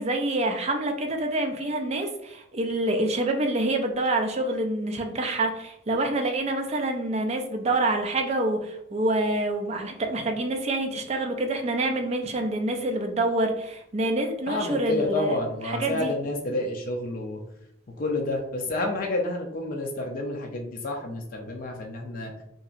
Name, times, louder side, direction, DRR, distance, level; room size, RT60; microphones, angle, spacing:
voice 1, 0.0-15.4 15.6-16.1, right 2 dB, 35° right, 4 dB, 0.4 m, -27 dB
voice 2, 14.5-17.4 18.0-22.3, left 2 dB, 45° left, 1 dB, 0.4 m, -29 dB
3.0 x 2.7 x 2.4 m, 0.77 s
head